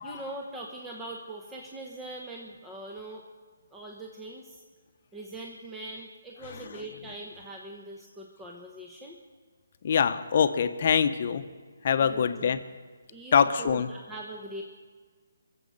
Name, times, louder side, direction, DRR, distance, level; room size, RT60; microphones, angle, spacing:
voice 1, 0.0-3.2 3.7-4.6 5.1-9.2 12.0-12.6 13.1-14.6, right 2 dB, 10° right, -1 dB, 1.1 m, -42 dB
voice 2, 9.8-11.4 11.8-12.6 13.3-13.9, left 7 dB, 50° left, 9 dB, 0.9 m, -24 dB
23.0 x 7.8 x 6.5 m, 1.5 s
hypercardioid pair, 150°, 0 cm